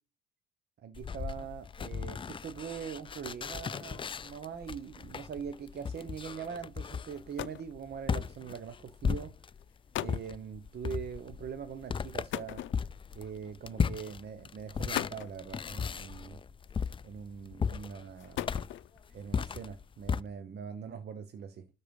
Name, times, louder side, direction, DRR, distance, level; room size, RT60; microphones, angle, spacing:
voice 1, 0.8-9.3 10.0-12.7 13.1-16.4 17.0-18.4 19.1-21.7, right 7 dB, 55° right, 1.0 m, -42 dB
sound 1, 0.9-9.7 10.1-20.2, left 6 dB, 25° left, 0.4 m, -36 dB
sound 2, 7.1-7.8 8.7-9.0 9.6-9.7 9.9-10.3 12.3-13.2 14.1-14.2 14.7-15.4 16.7-17.2 18.0-19.0, left 13 dB, 75° left, 0.5 m, -38 dB
12.5 x 4.3 x 5.3 m
cardioid pair, 90°, 20 cm